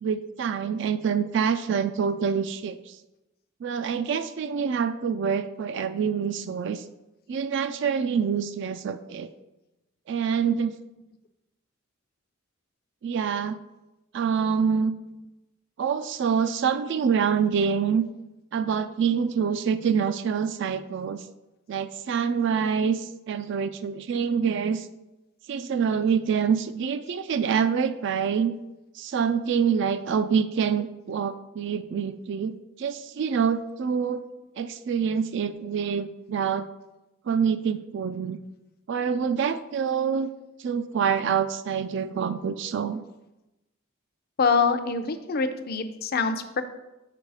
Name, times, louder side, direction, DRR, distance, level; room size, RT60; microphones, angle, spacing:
voice 1, 0.0-3.0 3.6-6.8 7.3-9.3 10.1-10.8 13.0-13.6 14.1-14.9 15.8-18.0 18.5-21.2 21.7-24.9 25.5-28.6 28.9-34.2 34.6-36.7 37.3-38.4 38.9-40.3 40.6-43.0, right 6 dB, 60° right, 11 dB, 0.3 m, -26 dB
voice 2, 44.4-46.6, left 5 dB, 50° left, 9 dB, 0.5 m, -25 dB
6.8 x 4.7 x 4.7 m, 0.98 s
head